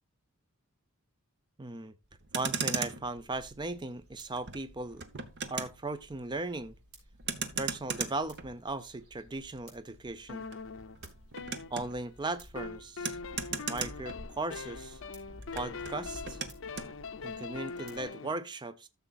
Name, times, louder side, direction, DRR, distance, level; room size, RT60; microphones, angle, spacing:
voice 1, 1.6-1.9 2.3-5.1 5.5-6.7 7.4-10.5 11.7-13.2 13.7-15.0 15.5-16.4 17.2-18.9, right 2 dB, 20° right, 0.5 m, -37 dB
Motor vehicle (road), 2.1-14.8 15.0-16.9, right 5 dB, 50° right, 0.9 m, -39 dB
sound 1, 3.1-18.1, left 1 dB, 90° right, 3.9 m, -54 dB
sound 2, 10.3-12.1 12.6-18.3, left 4 dB, 60° left, 0.6 m, -42 dB
13.5 x 7.0 x 2.4 m
head